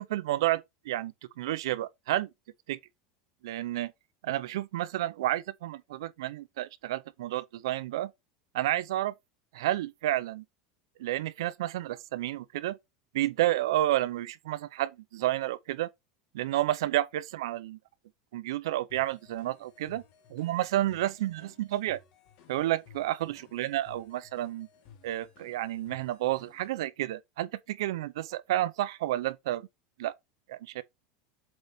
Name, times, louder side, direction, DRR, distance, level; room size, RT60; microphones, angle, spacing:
voice 1, 0.0-2.3 2.7-2.8 3.4-3.9 4.2-8.1 8.5-9.1 9.5-10.4 11.0-12.8 13.1-15.9 16.3-17.8 18.3-20.0 20.3-22.0 22.5-24.7 25.0-29.7 30.0-30.1 30.5-30.8, right 14 dB, 90° right, 0.6 m, -30 dB
sound 1, 18.9-26.7, left 7 dB, 50° left, 2.1 m, -57 dB
7.8 x 4.0 x 3.5 m
supercardioid pair, 155°, 2 cm